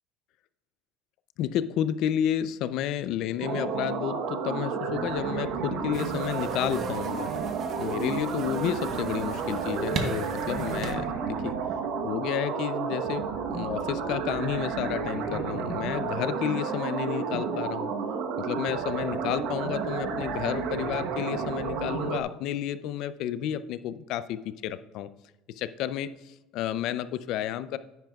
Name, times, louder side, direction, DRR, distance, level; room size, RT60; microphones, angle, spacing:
voice 1, 1.4-7.3 7.8-11.6 12.0-17.9 18.4-25.1 25.6-27.8, left 11 dB, 50° left, 14 dB, 0.4 m, -31 dB
sound 1, 3.4-22.2, right 5 dB, 60° right, 1.0 m, -31 dB
sound 2, 5.9-10.9, right 4 dB, 30° right, 0.8 m, -38 dB
9.9 x 9.2 x 2.3 m, 1.0 s
cardioid pair, 165°, 0 cm